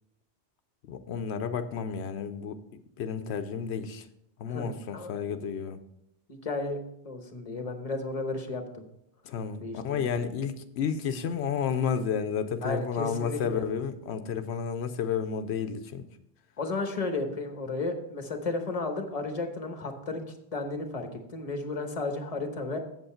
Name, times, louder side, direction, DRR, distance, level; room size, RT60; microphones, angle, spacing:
voice 1, 0.9-2.6 3.0-4.1 4.4-5.8 9.2-16.1, left 7 dB, 90° left, 9 dB, 0.9 m, -31 dB
voice 2, 4.5-5.1 6.3-6.8 7.0-8.8 9.6-10.0 12.6-13.6 16.6-20.2 20.5-22.8, left 3 dB, 35° left, 6 dB, 1.1 m, -33 dB
7.9 x 7.6 x 4.3 m, 0.79 s
omnidirectional pair, 1.1 m